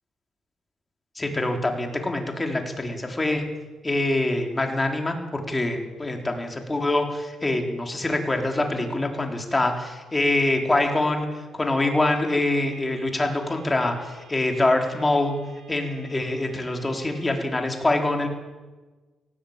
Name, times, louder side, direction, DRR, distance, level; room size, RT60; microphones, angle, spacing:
voice 1, 1.2-3.5 3.8-15.3 15.7-18.3, left 2 dB, 20° left, 3 dB, 4.0 m, -25 dB
nu tone, 12.1-17.2, right 1 dB, 70° right, 3.2 m, -52 dB
17.5 x 17.0 x 8.9 m, 1.3 s
cardioid pair, 90°, 0 cm